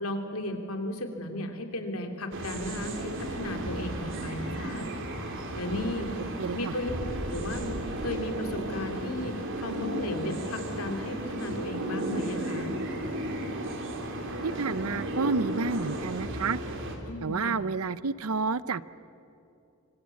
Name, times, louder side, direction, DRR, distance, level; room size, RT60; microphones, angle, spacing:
voice 1, 0.0-4.9 5.5-6.1 6.5-6.9 7.3-12.7 17.0-17.6, left 1 dB, 85° left, 4 dB, 3.2 m, -35 dB
sound 1, 2.3-17.0, right 1 dB, 60° right, 3.5 m, -34 dB
voice 2, 6.4-6.7 14.4-16.6 17.2-18.8, right 4 dB, 85° right, 16 dB, 0.7 m, -30 dB
26.0 x 24.5 x 8.5 m, 2.8 s
head